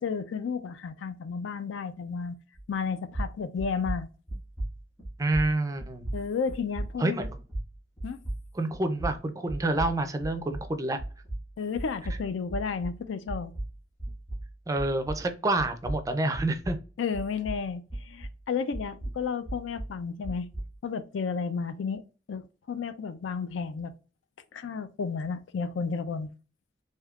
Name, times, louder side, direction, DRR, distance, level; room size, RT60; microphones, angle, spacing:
voice 1, 0.0-2.4 2.7-4.1 6.1-7.3 8.0-8.2 11.6-13.5 17.0-20.5 20.8-23.9 24.5-26.3, left 5 dB, 85° left, 0.4 m, -32 dB
sound 1, 2.5-2.9 3.1-10.7 11.0-15.3 15.6-18.4 18.7-20.8, right 1 dB, 20° left, 1.5 m, -37 dB
voice 2, 5.2-6.1 7.0-7.4 8.5-11.0 14.7-16.8, right 2 dB, 20° right, 0.4 m, -28 dB
3.5 x 2.7 x 2.3 m
head